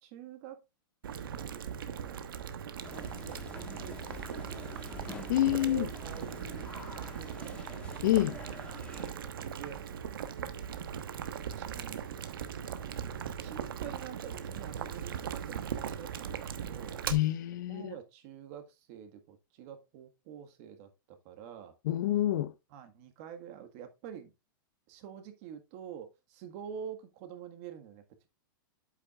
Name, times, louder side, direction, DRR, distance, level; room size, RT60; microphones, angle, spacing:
voice 1, 0.0-0.6 1.3-2.2 2.8-4.9 5.6-6.7 6.9-7.6 8.2-8.3 8.7-9.8 11.4-12.1 13.3-17.0 17.5-21.8 22.7-24.3 24.9-28.3, right 8 dB, 45° right, 1.6 m, -47 dB
Boiling, 1.0-17.1, right 8 dB, 85° right, 1.1 m, -39 dB
sound 1, 2.8-9.1, left 2 dB, 10° left, 1.4 m, -47 dB
voice 2, 5.3-5.9 8.0-8.4 17.1-17.9 21.8-22.5, left 13 dB, 60° left, 0.8 m, -27 dB
8.3 x 8.3 x 2.4 m
supercardioid pair, 155°, 11 cm